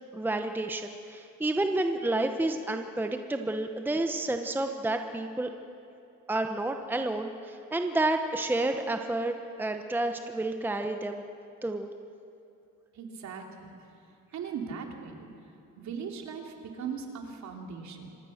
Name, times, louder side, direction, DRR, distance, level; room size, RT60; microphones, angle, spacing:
voice 1, 0.1-5.5 6.3-11.2 11.6-11.9, right 2 dB, 5° right, 6 dB, 1.0 m, -30 dB
voice 2, 12.9-13.7 14.3-15.3 15.8-18.1, right 6 dB, 60° right, 2 dB, 3.1 m, -39 dB
26.0 x 21.0 x 6.6 m, 2.7 s
cardioid pair, 130°, 33 cm